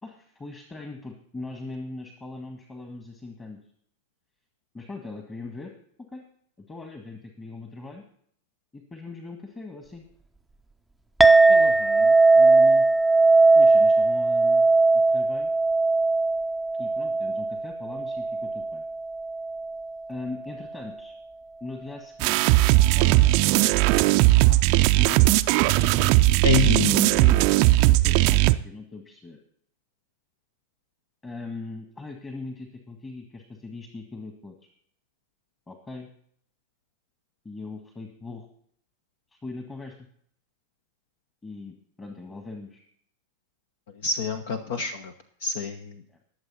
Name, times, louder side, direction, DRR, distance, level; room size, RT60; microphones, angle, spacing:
voice 1, 0.0-3.6 4.7-5.7 6.1-6.2 6.6-8.0 8.7-10.0 11.5-12.9 13.5-14.7 14.9-15.5 16.8-18.8 20.1-21.1 21.6-22.4 22.9-24.1 24.4-24.6 24.9-26.9 27.1-29.4 31.2-34.5 35.7-36.1 37.4-38.5 39.3-40.1 41.4-42.8 46.1-46.2, left 3 dB, 15° left, 4 dB, 1.7 m, -40 dB
Chink clink, 11.2-19.9, right 3 dB, 5° right, 0.6 m, -19 dB
sound 1, 22.2-28.5, right 19 dB, 45° right, 0.5 m, -18 dB
voice 2, 26.4-27.2 44.0-45.1 45.4-46.0, left 5 dB, 55° left, 10 dB, 0.9 m, -27 dB
20.5 x 7.3 x 4.2 m, 0.62 s
figure-of-eight pair, 90°, 0 cm